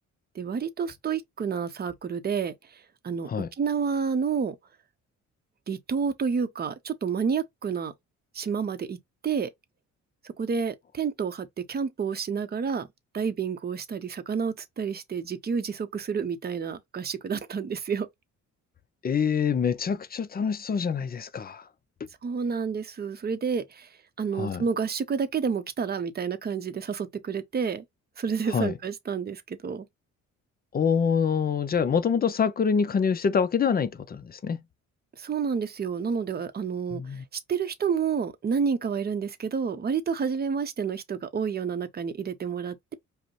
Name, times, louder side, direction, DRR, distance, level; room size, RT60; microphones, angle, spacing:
voice 1, 0.3-3.3 3.6-4.6 5.7-7.9 8.3-9.0 9.2-9.5 10.2-12.9 13.1-18.1 22.2-23.9 24.2-27.8 28.2-29.9 35.2-37.2 37.5-42.9, right 6 dB, 35° right, 0.7 m, -29 dB
voice 2, 19.0-21.6 24.4-24.6 28.5-28.7 30.7-34.6 36.9-37.2, left 6 dB, 30° left, 0.5 m, -25 dB
5.0 x 2.1 x 3.1 m
cardioid pair, 90°, 30 cm